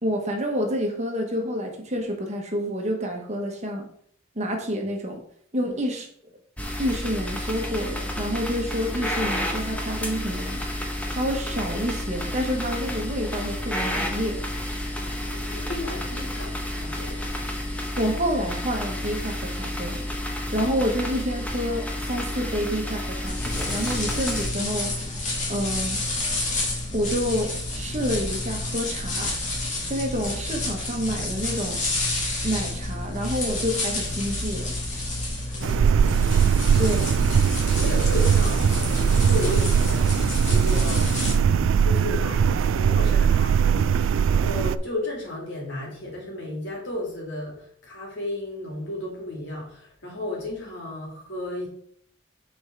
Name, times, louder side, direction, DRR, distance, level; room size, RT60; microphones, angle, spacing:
voice 1, 0.0-3.9 4.4-5.2 5.5-6.1 6.8-10.6 11.1-14.4 18.0-20.1 20.5-25.0 25.5-26.0 26.9-29.3 29.8-31.9 32.4-34.7 36.8-37.2, equal, 35° right, 3 dB, 1.2 m, -28 dB
sound 1, 6.6-24.5, left 1 dB, 5° left, 0.9 m, -30 dB
voice 2, 15.2-17.3 35.5-36.7 37.8-51.7, left 1 dB, 70° left, -2 dB, 2.9 m, -34 dB
sound 2, 23.3-41.3, left 2 dB, 40° left, 2.1 m, -29 dB
sound 3, 35.6-44.8, right 7 dB, 80° right, 0.3 m, -20 dB
7.1 x 4.6 x 4.6 m, 0.63 s
head